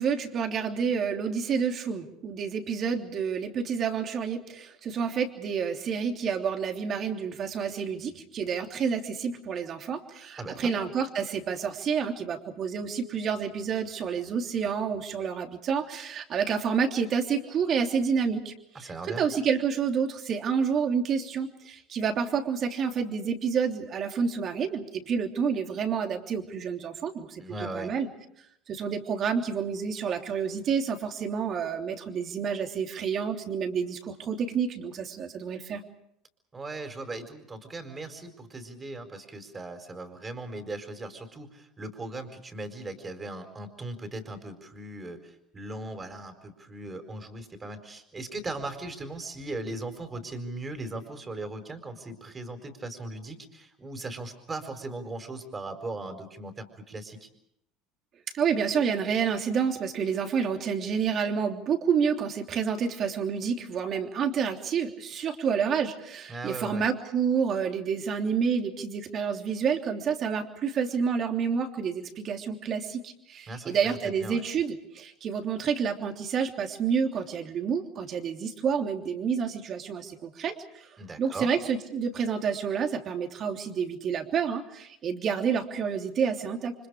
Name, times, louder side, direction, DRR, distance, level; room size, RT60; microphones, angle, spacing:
voice 1, 0.0-18.9 19.2-28.1 28.7-35.8 58.3-80.9 81.2-86.7, right 6 dB, 45° right, 4 dB, 3.2 m, -29 dB
voice 2, 10.4-10.7 18.7-19.2 27.4-27.9 36.5-57.3 66.3-66.9 73.5-73.8 74.0-74.4 81.0-81.5, right 2 dB, 25° right, 7 dB, 4.6 m, -38 dB
29.5 x 25.5 x 5.0 m, 0.77 s
hypercardioid pair, 75°, 0 cm